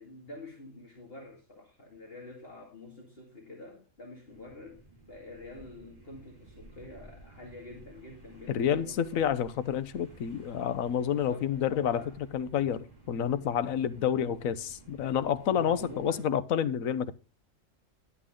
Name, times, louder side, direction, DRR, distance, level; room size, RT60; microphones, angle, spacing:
voice 1, 0.0-9.4 11.0-12.1 15.5-16.3, left 2 dB, 45° left, 2.5 m, -47 dB
sound 1, 4.3-16.3, right 2 dB, 40° right, 4.4 m, -54 dB
voice 2, 8.5-12.0 12.3-17.1, left 9 dB, 85° left, 1.2 m, -29 dB
11.0 x 8.3 x 3.7 m
omnidirectional pair, 1.4 m